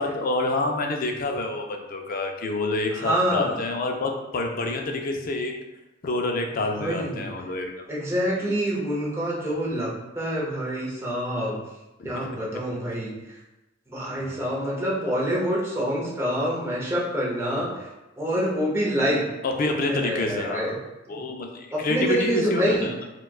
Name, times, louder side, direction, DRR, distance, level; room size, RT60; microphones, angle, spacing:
voice 1, 0.0-5.5 6.0-7.7 8.4-8.5 12.0-12.3 14.1-14.4 17.6-17.7 19.4-20.8 21.1-23.0, left 2 dB, 45° left, 3 dB, 0.4 m, -28 dB
voice 2, 2.9-3.6 6.8-7.3 7.9-11.6 12.0-13.4 13.9-17.9 18.2-19.2 19.9-20.8 21.1-21.2 21.7-22.9, equal, 15° right, -5 dB, 0.7 m, -26 dB
4.3 x 2.3 x 2.3 m, 1.0 s
head